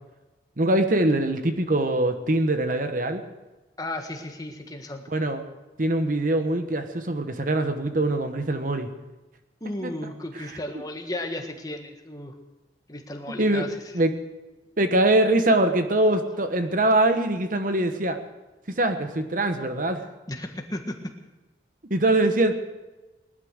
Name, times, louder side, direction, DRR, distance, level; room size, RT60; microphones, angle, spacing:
voice 1, 0.6-3.2 5.1-5.4 5.8-8.9 9.8-10.1 13.3-13.7 13.9-14.2 14.8-18.2 18.8-20.0 21.8-22.6, right 1 dB, 50° right, 7 dB, 1.2 m, -23 dB
voice 2, 3.8-5.0 9.6-12.3 12.9-13.8 20.3-20.9, left 1 dB, 20° left, 4 dB, 1.6 m, -34 dB
19.0 x 12.0 x 6.5 m, 1.1 s
head